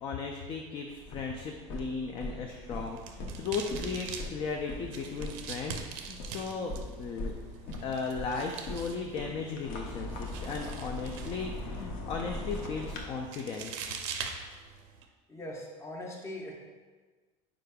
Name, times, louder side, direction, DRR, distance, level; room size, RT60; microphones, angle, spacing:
voice 1, 0.0-7.3 7.8-14.0, left 5 dB, 35° left, 2 dB, 0.3 m, -36 dB
sound 1, 0.8-13.0, left 1 dB, 55° left, 0.7 m, -41 dB
sound 2, 2.7-15.0, right 6 dB, 80° right, 0.5 m, -44 dB
voice 2, 15.3-16.5, left 1 dB, 15° left, -1 dB, 0.8 m, -40 dB
5.0 x 4.7 x 2.2 m, 1.4 s
supercardioid pair, 135°, 16 cm